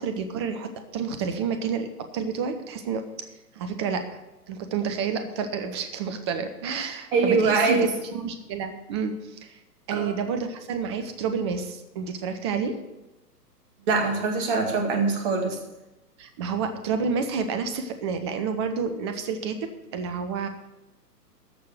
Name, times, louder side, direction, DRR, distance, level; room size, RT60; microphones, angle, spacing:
voice 1, 0.0-3.0 3.6-4.0 4.5-9.6 9.9-12.8 16.2-19.6 19.9-20.5, right 6 dB, 15° right, 8 dB, 0.6 m, -29 dB
voice 2, 7.1-7.9 9.9-10.1 13.9-15.6, right 4 dB, 35° right, 3 dB, 2.2 m, -23 dB
14.0 x 4.7 x 9.0 m, 0.98 s
figure-of-eight pair, 120°, 49 cm